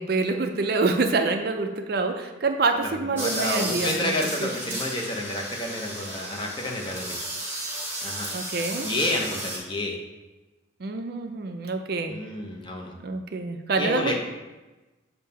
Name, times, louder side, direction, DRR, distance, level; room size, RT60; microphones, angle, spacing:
voice 1, 0.0-4.1 4.4-4.8 8.3-8.9 10.8-12.2 13.0-14.2, right 3 dB, 50° right, 6 dB, 0.4 m, -26 dB
voice 2, 2.8-7.2 8.0-8.3 8.8-10.0 12.1-12.9 13.8-14.2, left 1 dB, 25° left, 0 dB, 0.8 m, -30 dB
sound 1, 3.2-9.6, right 1 dB, 10° right, 1.1 m, -33 dB
7.2 x 2.8 x 5.4 m, 1.1 s
head